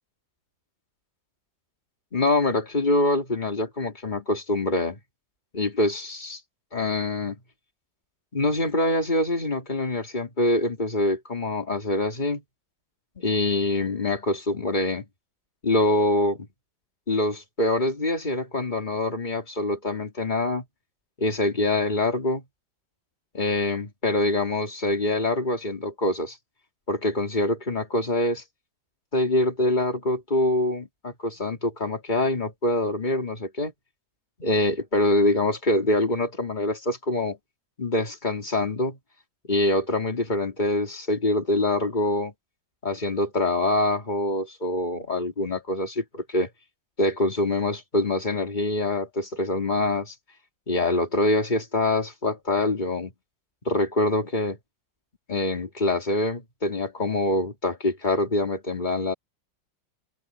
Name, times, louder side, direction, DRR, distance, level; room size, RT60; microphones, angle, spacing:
voice 1, 2.1-5.0 5.5-6.4 6.7-7.4 8.3-12.4 13.2-15.1 15.6-16.5 17.1-20.6 21.2-22.4 23.3-26.4 26.9-28.4 29.1-33.7 34.4-37.4 37.8-39.0 39.4-42.3 42.8-46.5 47.0-50.1 50.7-53.1 53.6-54.6 55.3-59.1, left 2 dB, 25° left, 2.8 m, -25 dB
open air
omnidirectional pair, 2.0 m